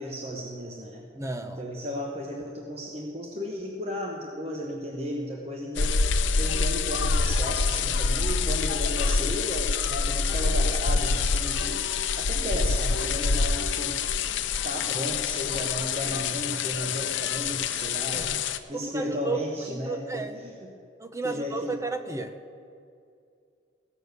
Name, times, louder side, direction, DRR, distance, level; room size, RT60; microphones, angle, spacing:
voice 1, 0.0-1.1 1.4-5.9 6.4-11.8 12.2-14.0 14.6-18.3 18.7-20.8 21.2-21.7, equal, 30° right, 0 dB, 1.1 m, -34 dB
voice 2, 1.1-1.6 12.5-12.6 18.1-18.4 18.7-20.4 21.0-22.4, right 3 dB, 15° right, 8 dB, 0.5 m, -33 dB
sound 1, 5.8-18.6, left 4 dB, 80° left, 0.6 m, -26 dB
16.0 x 6.6 x 8.2 m, 2.4 s
head